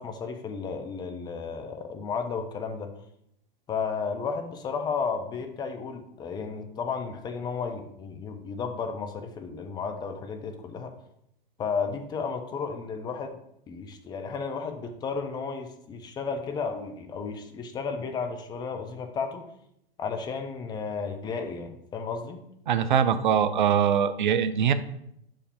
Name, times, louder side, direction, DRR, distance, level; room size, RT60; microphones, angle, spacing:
voice 1, 0.0-2.9 3.7-10.9 11.6-13.4 13.7-19.4 20.0-22.4, left 5 dB, 15° left, 6 dB, 0.5 m, -33 dB
voice 2, 22.7-24.7, right 8 dB, 55° right, 12 dB, 0.5 m, -22 dB
6.3 x 5.0 x 3.7 m, 0.75 s
figure-of-eight pair, 105°, 29 cm